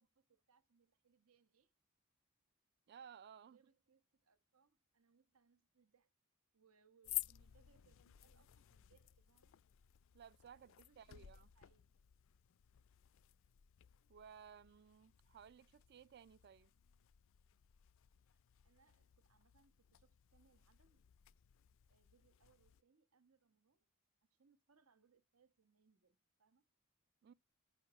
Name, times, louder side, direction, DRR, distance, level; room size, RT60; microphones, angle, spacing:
voice 1, 0.0-1.7 3.4-6.1 6.5-9.6 10.5-12.1 18.3-21.0 21.9-23.9 24.3-26.6, right 5 dB, 80° right, 1.2 m, -75 dB
voice 2, 2.9-3.6 10.1-11.5 14.1-16.7 27.2-27.3, right 7 dB, 50° right, 0.4 m, -59 dB
sound 1, 7.0-22.8, left 18 dB, 60° left, 0.4 m, -54 dB
9.3 x 5.8 x 3.1 m
head